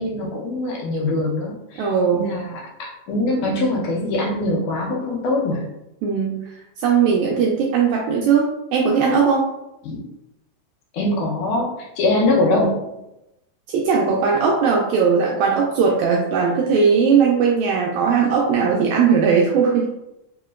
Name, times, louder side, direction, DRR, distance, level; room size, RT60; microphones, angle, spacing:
voice 1, 0.0-5.7 9.8-10.0 10.9-12.8, left 2 dB, 75° left, -3 dB, 2.1 m, -23 dB
voice 2, 1.8-2.3 6.0-6.5 6.8-9.5 13.7-19.9, right 6 dB, 85° right, -1 dB, 1.6 m, -18 dB
4.9 x 2.9 x 2.4 m, 0.90 s
omnidirectional pair, 3.7 m